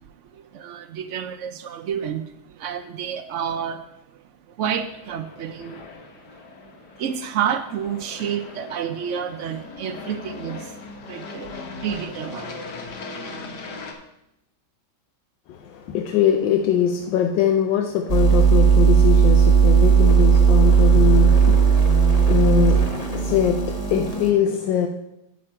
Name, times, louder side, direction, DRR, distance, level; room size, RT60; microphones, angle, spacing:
voice 1, 0.3-3.8 4.1-4.2 4.5-5.9 6.3-6.4 6.6-6.7 7.0-11.6 11.8-12.5 12.8-12.9, right 8 dB, 85° right, 0.6 m, -30 dB
Aircraft, 4.7-13.9, left 3 dB, 65° left, 1.6 m, -39 dB
voice 2, 15.5-24.9, left 8 dB, 85° left, 1.3 m, -22 dB
sound 1, 18.1-24.3, right 6 dB, 30° left, 0.7 m, -16 dB
9.5 x 6.7 x 4.3 m
omnidirectional pair, 1.9 m